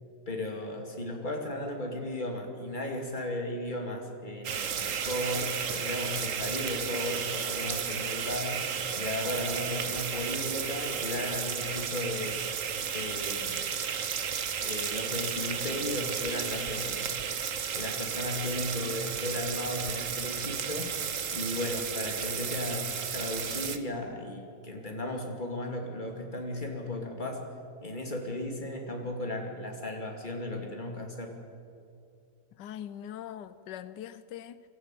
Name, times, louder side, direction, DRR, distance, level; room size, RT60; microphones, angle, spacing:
voice 1, 0.3-8.6 9.0-12.4 12.9-13.6 14.6-17.1 17.8-20.9 21.3-27.4 27.8-31.3, left 1 dB, 25° left, 2.8 m, -35 dB
sound 1, 4.4-23.8, right 7 dB, 55° right, 1.3 m, -33 dB
voice 2, 32.6-34.6, left 10 dB, 90° left, 1.3 m, -42 dB
25.0 x 13.5 x 9.2 m
omnidirectional pair, 1.8 m